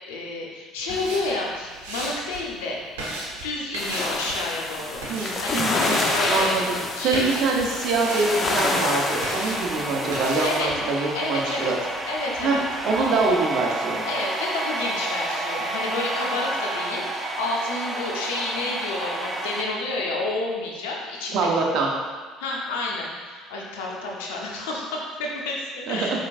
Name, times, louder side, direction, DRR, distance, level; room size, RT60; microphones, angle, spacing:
voice 1, 0.1-2.9 3.4-5.0 5.4-6.6 6.9-7.3 10.4-11.7 12.0-12.6 14.1-21.5 22.4-26.2, left 2 dB, 80° left, -2 dB, 0.8 m, -30 dB
sound 1, 0.8-13.4, right 1 dB, 85° right, 1.1 m, -37 dB
sound 2, 3.8-10.6, left 2 dB, 40° left, 0.6 m, -28 dB
voice 2, 5.1-6.0 6.3-6.6 7.0-11.8 12.4-12.6 12.8-14.1 21.3-21.9 25.9-26.2, right 3 dB, 60° right, 0 dB, 0.8 m, -24 dB
sound 3, 8.0-19.6, right 2 dB, 15° right, 0.6 m, -30 dB
5.0 x 3.7 x 2.5 m, 1.4 s
hypercardioid pair, 65°, 0 cm